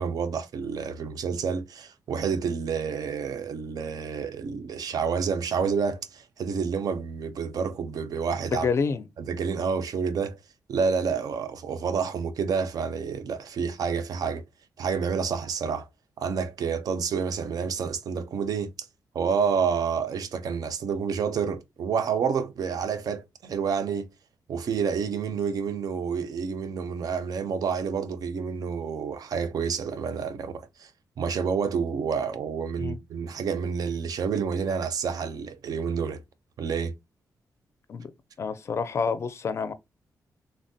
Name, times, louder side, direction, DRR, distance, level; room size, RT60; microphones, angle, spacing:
voice 1, 0.0-8.7 9.3-10.4 10.7-14.4 14.8-15.9 16.2-18.7 19.1-24.1 24.5-30.9 31.2-36.2 36.6-36.9, right 6 dB, 60° right, 0.5 m, -29 dB
voice 2, 8.5-9.0 32.8-33.0 37.9-38.1 38.4-39.7, left 5 dB, 40° left, 0.4 m, -28 dB
3.4 x 2.1 x 2.6 m
wide cardioid pair, 160°, 7 cm